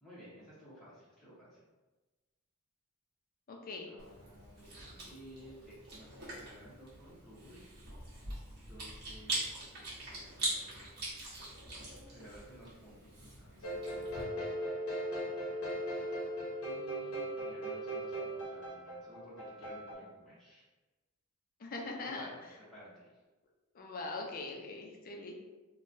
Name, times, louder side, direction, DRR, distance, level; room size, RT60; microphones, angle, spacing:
voice 1, 0.0-1.6 3.9-7.6 8.5-9.8 10.1-10.9 12.1-14.7 16.6-20.6 22.0-23.1, equal, ahead, -11 dB, 0.8 m, -55 dB
voice 2, 3.5-3.9 21.6-22.3 23.7-25.3, left 3 dB, 40° left, 1 dB, 0.5 m, -41 dB
Chewing mastication, 4.0-14.2, right 2 dB, 50° right, 1.1 m, -43 dB
sound 1, 13.6-19.9, right 1 dB, 85° left, 0.9 m, -38 dB
3.7 x 2.2 x 2.6 m, 1.2 s
head